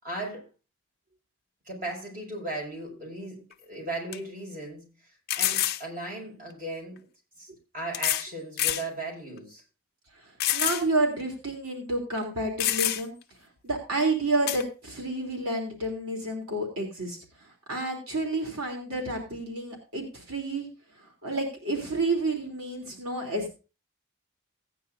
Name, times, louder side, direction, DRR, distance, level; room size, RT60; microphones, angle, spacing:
voice 1, 0.0-0.4 1.7-4.9 5.3-7.0 7.4-9.6, right 2 dB, 40° right, -1 dB, 5.8 m, -37 dB
sound 1, 3.5-3.6 4.1-4.2 5.3-5.8 7.0-7.1 7.9-8.3 8.6-8.9 9.4-9.5 10.4-10.9 11.2-11.3 12.2-12.3 12.6-13.2 14.5-14.6, left 12 dB, 45° left, 0.6 m, -27 dB
voice 2, 10.1-13.1 13.6-20.7 21.0-23.6, right 2 dB, 85° right, 1 dB, 3.1 m, -30 dB
17.0 x 9.9 x 2.6 m, 0.32 s
head